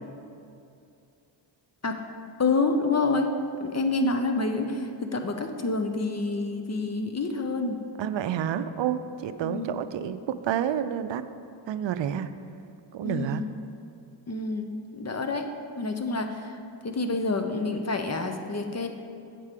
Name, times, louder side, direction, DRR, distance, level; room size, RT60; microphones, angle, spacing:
voice 1, 2.4-3.3 3.6-7.8 9.4-9.8 13.0-13.5 14.3-15.5 15.8-16.6 16.8-18.9, left 3 dB, 30° left, 6 dB, 0.8 m, -28 dB
voice 2, 8.0-11.2 11.7-12.3 12.9-13.4, right 9 dB, 60° right, 11 dB, 0.6 m, -29 dB
8.3 x 4.8 x 7.4 m, 2.5 s
cardioid pair, 75°, 49 cm